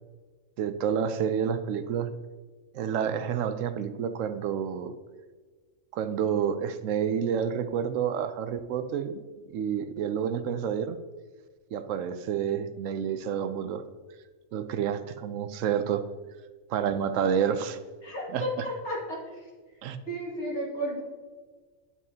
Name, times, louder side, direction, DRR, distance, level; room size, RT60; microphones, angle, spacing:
voice 1, 0.6-2.1 2.7-4.9 5.9-9.2 9.5-11.0 11.7-13.8 14.5-16.0 16.7-17.8 18.3-18.7 19.8-20.0, right 8 dB, 75° right, 10 dB, 0.9 m, -29 dB
voice 2, 18.0-19.4 20.1-21.0, equal, 60° left, -4 dB, 2.5 m, -33 dB
9.7 x 7.2 x 2.8 m, 1.4 s
omnidirectional pair, 1.4 m